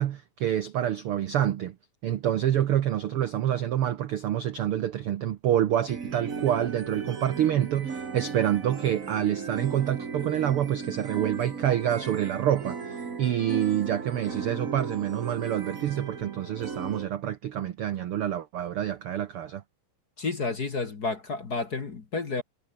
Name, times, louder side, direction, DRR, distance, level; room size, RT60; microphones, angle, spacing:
voice 1, 0.0-1.8 2.0-19.6, right 11 dB, 80° right, 1.2 m, -27 dB
sound 1, 5.9-17.1, right 5 dB, 30° right, 1.8 m, -36 dB
voice 2, 20.2-22.4, left 3 dB, 35° left, 1.9 m, -31 dB
omnidirectional pair, 3.9 m